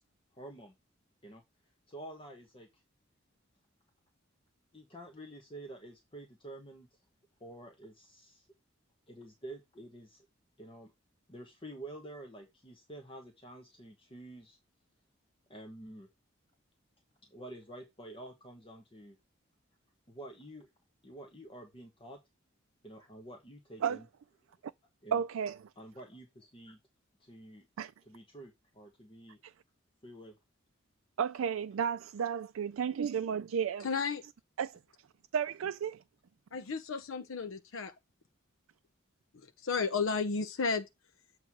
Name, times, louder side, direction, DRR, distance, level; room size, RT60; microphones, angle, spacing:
voice 1, 0.4-0.7 1.2-1.4 1.9-2.8 4.7-6.9 7.4-8.5 9.1-10.3 10.6-10.9 11.3-14.6 15.5-16.1 17.3-19.2 20.1-20.7 21.0-22.2 22.8-24.1 25.0-25.2 25.8-26.8 27.2-27.7 28.1-29.4 30.0-30.3, right 1 dB, 25° left, 1.1 m, -49 dB
voice 2, 25.1-25.7 27.8-27.9 29.4-29.5 31.2-33.9 34.6-34.7 35.3-35.9, right 7 dB, 80° right, 0.4 m, -32 dB
voice 3, 33.8-34.2 36.5-37.9 39.6-40.9, left 5 dB, 75° left, 0.6 m, -32 dB
7.8 x 3.1 x 6.0 m
head